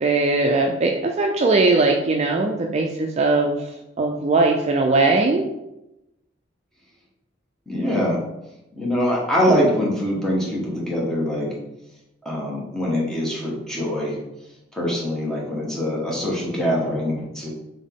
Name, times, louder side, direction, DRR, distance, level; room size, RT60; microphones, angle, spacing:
voice 1, 0.0-3.6 4.0-5.5, right 3 dB, 35° right, 2 dB, 0.4 m, -19 dB
voice 2, 7.7-8.2 8.8-11.5 12.2-14.2 14.7-17.5, equal, 5° left, -5 dB, 1.2 m, -23 dB
4.0 x 3.5 x 3.6 m, 0.90 s
head